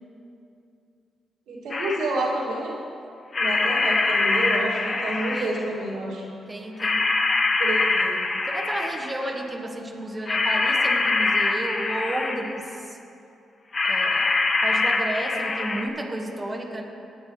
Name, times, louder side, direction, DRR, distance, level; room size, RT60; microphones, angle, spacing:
voice 1, 1.5-2.7 3.3-6.2 7.6-8.2, right 2 dB, 80° right, -5 dB, 2.2 m, -29 dB
sound 1, 1.7-2.3 3.3-5.8 6.8-9.2 10.3-12.7 13.7-15.9, left 3 dB, 45° left, 0.9 m, -24 dB
voice 2, 5.3-5.7 6.5-7.0 8.5-13.0 13.8-16.8, right 1 dB, 25° right, 0 dB, 1.5 m, -32 dB
17.5 x 8.7 x 3.2 m, 2.6 s
supercardioid pair, 50°, 0 cm